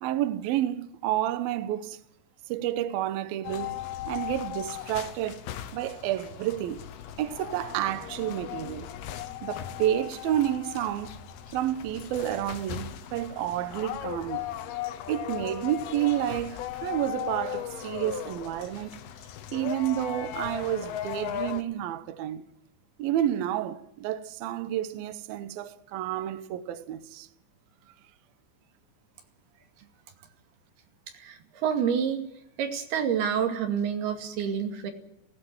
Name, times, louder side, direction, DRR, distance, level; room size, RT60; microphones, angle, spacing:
voice 1, 0.0-2.0 2.5-5.5 5.7-6.8 7.2-8.9 9.4-11.2 11.5-14.5 15.1-19.0 19.5-22.4 23.0-27.3, right 12 dB, 90° right, 2.1 m, -30 dB
sound 1, 3.4-21.6, left 11 dB, 70° left, 2.6 m, -37 dB
voice 2, 31.1-32.2 32.6-34.9, right 7 dB, 55° right, 3.8 m, -28 dB
17.5 x 16.5 x 9.6 m
omnidirectional pair, 5.8 m